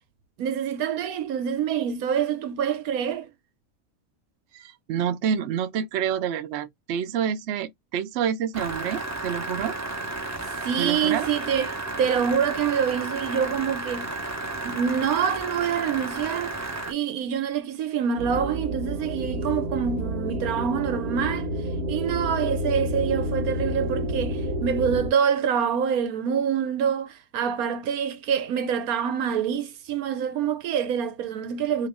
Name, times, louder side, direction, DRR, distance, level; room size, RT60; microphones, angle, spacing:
voice 1, 0.4-3.3 10.6-14.1 14.6-16.6 16.9-21.5 21.9-31.9, right 7 dB, 85° right, 1.2 m, -26 dB
voice 2, 4.5-9.7 10.8-11.3, right 8 dB, 65° right, 0.7 m, -28 dB
sound 1, 8.5-16.9, right 2 dB, 15° right, 0.5 m, -33 dB
sound 2, 18.2-25.1, right 1 dB, 50° right, 1.0 m, -29 dB
3.0 x 2.8 x 3.4 m
omnidirectional pair, 1.5 m